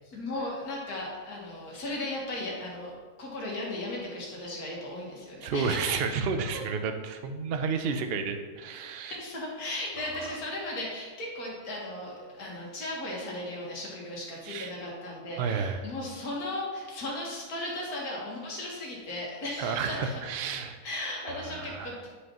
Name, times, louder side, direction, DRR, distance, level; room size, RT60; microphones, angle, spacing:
voice 1, 0.0-6.0 9.1-20.2 20.8-22.1, left 1 dB, 75° left, -3 dB, 2.0 m, -36 dB
voice 2, 5.4-9.2 14.4-14.7 15.4-15.9 19.6-20.8 21.2-21.9, right 5 dB, 60° right, 7 dB, 0.6 m, -31 dB
9.7 x 5.4 x 2.9 m, 1.5 s
omnidirectional pair, 1.6 m